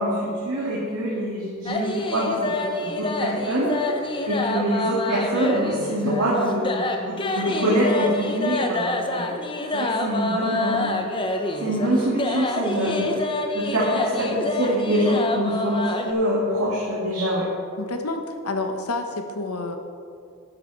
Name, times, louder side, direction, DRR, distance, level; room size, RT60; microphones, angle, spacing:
voice 1, 0.0-3.7 4.3-9.3 9.7-10.9 11.6-13.2 13.5-17.4, equal, 80° right, -6 dB, 2.0 m, -25 dB
sound 1, 1.7-16.1, left 2 dB, 25° left, 0.7 m, -27 dB
voice 2, 17.8-19.8, left 2 dB, 85° left, 5 dB, 1.1 m, -29 dB
12.0 x 9.9 x 4.1 m, 2.3 s
head